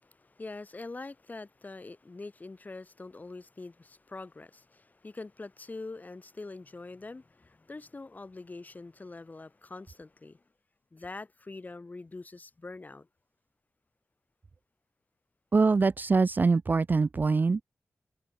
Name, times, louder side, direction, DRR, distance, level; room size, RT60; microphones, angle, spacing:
voice 1, 0.0-10.4 10.9-13.1, left 3 dB, 35° left, 1.1 m, -44 dB
voice 2, 15.5-17.6, right 4 dB, 40° right, 0.3 m, -24 dB
wide cardioid pair, 75°, 5 cm